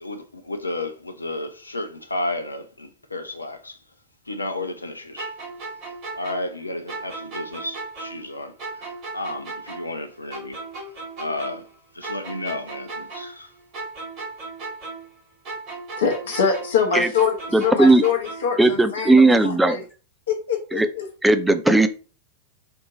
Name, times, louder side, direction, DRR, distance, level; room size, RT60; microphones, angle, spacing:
voice 1, 0.0-3.8 4.3-5.3 6.2-10.6 11.2-11.7 11.9-13.5, left 2 dB, 80° left, 0.5 m, -32 dB
sound 1, 5.2-8.3 8.6-11.7 12.0-15.2 15.4-18.6, right 3 dB, 40° right, 2.4 m, -36 dB
voice 2, 16.0-19.8 20.3-21.1, left 6 dB, 65° left, 1.3 m, -24 dB
voice 3, 17.5-18.0 18.6-19.8 20.7-20.9 21.2-21.9, right 2 dB, 5° right, 0.5 m, -16 dB
4.6 x 2.8 x 3.8 m
figure-of-eight pair, 90°, 0 cm